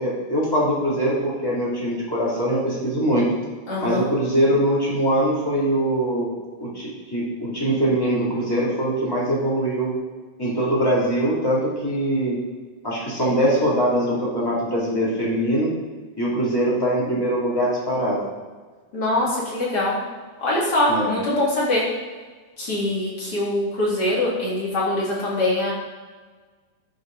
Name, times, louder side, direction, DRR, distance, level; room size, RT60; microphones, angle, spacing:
voice 1, 0.0-3.3 3.8-6.3 6.6-9.9 10.4-12.4 12.8-15.8 16.2-18.2 20.9-21.1, right 1 dB, 10° left, -7 dB, 1.5 m, -22 dB
voice 2, 3.7-4.0 18.9-20.0 20.4-21.8 22.6-25.7, left 1 dB, 30° left, -6 dB, 2.2 m, -23 dB
13.5 x 6.5 x 4.1 m, 1.4 s
omnidirectional pair, 5.7 m